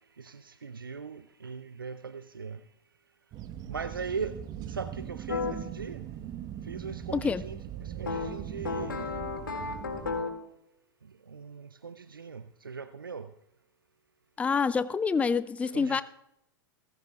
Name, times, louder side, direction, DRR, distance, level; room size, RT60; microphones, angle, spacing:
voice 1, 0.2-2.6 3.7-4.4 4.7-6.0 6.7-9.2 10.1-10.3 11.3-13.3 15.6-16.0, right 5 dB, 85° right, 13 dB, 0.5 m, -39 dB
sound 1, 3.3-10.2, right 10 dB, 35° right, 1.0 m, -40 dB
sound 2, 5.3-5.5 8.1-10.5, left 5 dB, 80° left, 2.1 m, -33 dB
voice 2, 7.1-7.4 14.4-16.0, left 5 dB, 10° left, 16 dB, 0.5 m, -27 dB
26.0 x 15.0 x 2.4 m, 0.83 s
figure-of-eight pair, 90°, 11 cm